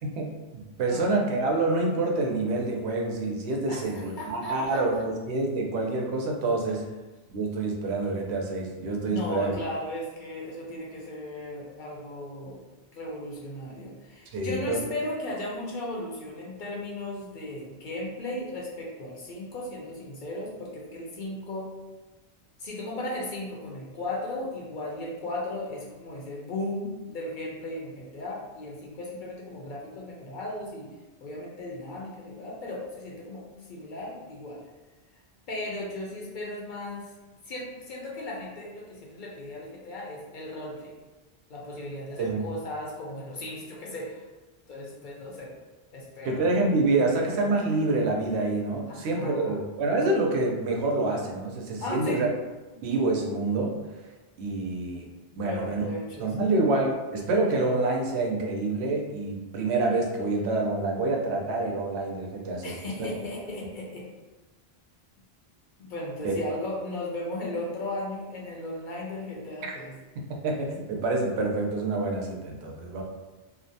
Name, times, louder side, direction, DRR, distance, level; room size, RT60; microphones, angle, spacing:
voice 1, 0.0-6.9 7.3-9.5 14.3-14.8 42.2-42.4 46.2-52.3 52.8-53.7 54.4-55.1 55.4-55.9 56.2-62.8 66.2-66.4 69.6-69.7 70.4-73.0, right 2 dB, 85° right, 1 dB, 0.8 m, -27 dB
voice 2, 0.7-1.0 3.7-5.1 9.1-12.6 12.9-21.7 22.6-30.9 31.2-33.4 33.7-34.6 35.5-37.1 37.4-40.9 41.5-44.2 44.7-45.5 45.9-46.5 48.9-49.6 51.8-52.2 52.7-52.8 55.3-56.5 62.6-64.1 65.8-69.9, left 1 dB, 55° left, -3 dB, 0.6 m, -36 dB
2.6 x 2.1 x 2.6 m, 1.2 s
omnidirectional pair, 1.1 m